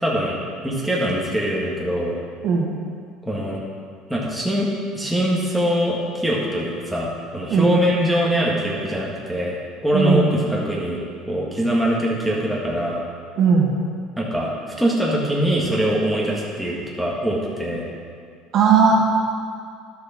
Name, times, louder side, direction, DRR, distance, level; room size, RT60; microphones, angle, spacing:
voice 1, 0.0-0.4 0.6-2.1 3.2-3.6 4.1-4.7 4.9-9.6 9.8-11.0 11.3-13.0 14.2-14.5 14.8-17.8, equal, ahead, -5 dB, 1.7 m, -22 dB
voice 2, 7.5-7.8 9.9-10.5 13.4-13.7 18.5-18.9, right 5 dB, 55° right, -2 dB, 1.9 m, -17 dB
11.0 x 6.4 x 4.4 m, 2.2 s
supercardioid pair, 110°, 0 cm